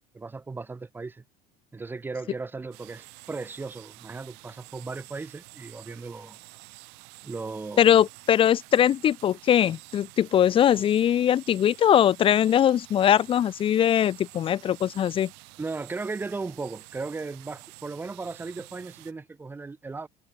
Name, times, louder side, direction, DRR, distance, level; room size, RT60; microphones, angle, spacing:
voice 1, 0.1-1.2 1.7-6.4 7.2-8.0 15.6-20.1, right 3 dB, 10° right, 2.1 m, -36 dB
sound 1, 2.7-19.1, right 31 dB, 70° right, 7.8 m, -49 dB
voice 2, 7.8-15.3, left 10 dB, 30° left, 1.7 m, -21 dB
cardioid pair, 175°, 18 cm